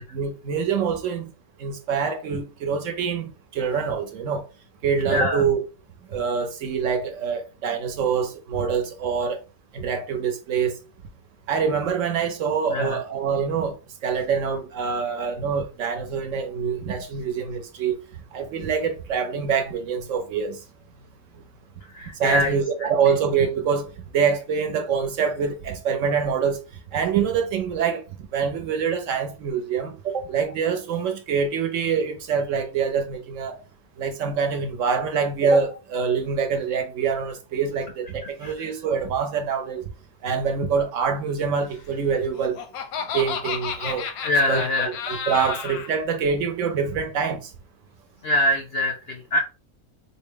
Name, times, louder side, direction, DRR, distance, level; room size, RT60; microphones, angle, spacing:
voice 1, 0.1-1.3 1.6-4.4 4.8-5.6 6.1-9.4 9.7-10.7 11.5-13.7 14.0-18.0 18.3-20.6 22.2-23.9 24.1-26.6 26.9-28.0 28.3-33.5 34.0-39.8 40.2-42.6 43.1-44.1 44.5-47.4, right 6 dB, 70° right, 0.9 m, -25 dB
voice 2, 5.1-5.4 12.7-13.0 21.9-22.5 38.4-38.5 44.2-44.9 48.2-49.4, left 1 dB, 65° left, 0.6 m, -23 dB
Laughter, 42.1-45.9, left 7 dB, 90° left, 1.1 m, -32 dB
3.8 x 2.0 x 3.7 m
omnidirectional pair, 1.5 m